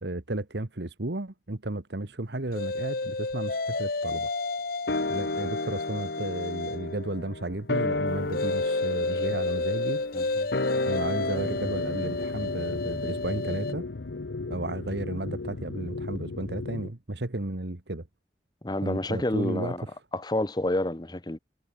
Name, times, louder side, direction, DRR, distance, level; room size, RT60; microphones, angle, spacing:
voice 1, 0.0-4.3 5.1-10.0 10.8-13.9 14.5-18.1 18.8-19.7, right 2 dB, 65° right, 1.5 m, -33 dB
sound 1, 2.5-6.9 8.3-13.7, left 3 dB, 55° left, 1.0 m, -31 dB
sound 2, 4.9-15.5 15.8-15.9, left 2 dB, 70° left, 1.7 m, -34 dB
sound 3, 11.3-16.9, left 3 dB, 90° left, 0.8 m, -36 dB
voice 2, 18.6-19.8 20.1-21.4, left 1 dB, 20° left, 0.9 m, -29 dB
head